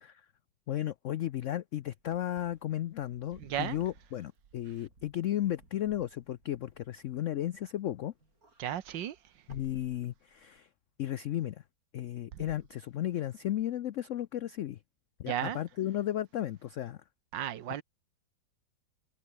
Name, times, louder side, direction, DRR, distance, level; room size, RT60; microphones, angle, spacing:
voice 1, 0.7-8.1 9.5-10.7 11.0-11.6 11.9-14.8 15.2-17.0, left 12 dB, 90° left, 0.6 m, -34 dB
Wind / Car, 2.0-7.8 8.1-10.6, right 3 dB, 50° right, 5.1 m, -58 dB
voice 2, 3.4-3.8 8.6-9.2 12.3-12.4 15.3-15.6 17.3-17.8, right 10 dB, 80° right, 1.7 m, -34 dB
omnidirectional pair, 2.0 m